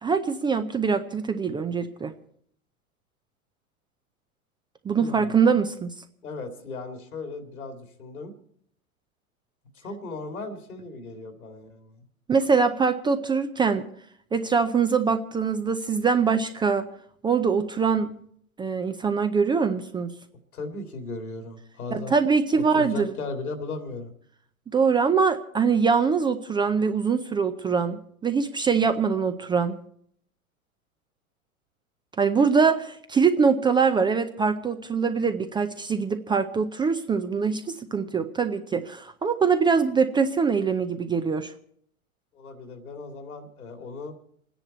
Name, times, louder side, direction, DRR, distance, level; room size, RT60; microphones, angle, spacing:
voice 1, 0.0-2.1 4.8-5.9 12.3-13.8 14.3-16.9 17.2-18.1 18.6-20.1 21.9-23.1 24.7-29.8 32.2-41.5, right 5 dB, 10° right, 9 dB, 0.5 m, -23 dB
voice 2, 5.0-5.5 6.2-8.3 9.7-12.1 20.5-22.2 22.7-24.1 42.3-44.2, left 3 dB, 80° left, 6 dB, 2.7 m, -37 dB
27.5 x 10.0 x 4.2 m, 0.64 s
hypercardioid pair, 100°, 43 cm